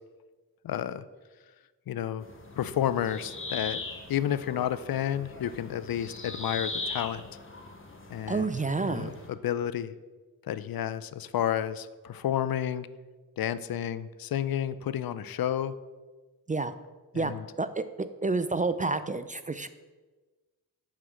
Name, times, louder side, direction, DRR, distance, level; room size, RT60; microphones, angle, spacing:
voice 1, 0.6-1.0 1.9-2.3 2.6-3.8 4.1-7.2 8.1-8.5 8.9-9.9 10.4-12.9 13.4-15.7 17.1-17.4, left 10 dB, 65° left, 14 dB, 0.5 m, -31 dB
sound 1, 2.2-9.3, left 3 dB, 30° left, 1.3 m, -40 dB
voice 2, 8.3-9.1 16.5-16.7 17.1-19.7, right 3 dB, 20° right, 12 dB, 0.4 m, -29 dB
5.8 x 4.8 x 6.0 m, 1.3 s
cardioid pair, 45°, 39 cm